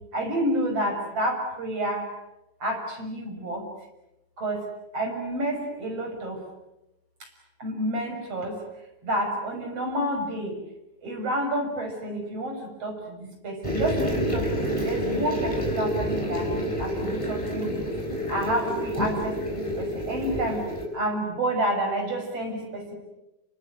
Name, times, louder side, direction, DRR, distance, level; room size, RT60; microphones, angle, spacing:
voice 1, 0.1-2.0 2.6-3.7 4.4-4.7 4.9-6.4 7.2-7.3 7.6-8.6 9.0-10.6 11.0-14.5 14.8-16.5 16.8-17.9 18.3-20.7 20.9-22.9, right 1 dB, 50° right, 3 dB, 7.3 m, -29 dB
sound 1, 13.6-20.9, equal, 10° left, 5.9 m, -28 dB
28.5 x 25.0 x 8.1 m, 0.92 s
omnidirectional pair, 3.4 m